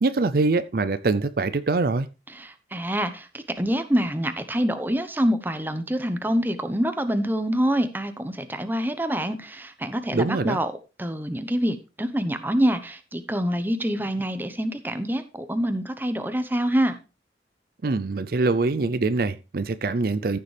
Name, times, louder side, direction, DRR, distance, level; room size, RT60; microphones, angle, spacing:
voice 1, 0.0-2.1 10.1-10.6 17.8-20.4, right 3 dB, 55° right, 0.5 m, -24 dB
voice 2, 2.3-10.7 11.0-17.0, equal, 10° right, 0.9 m, -26 dB
14.5 x 6.8 x 3.4 m
head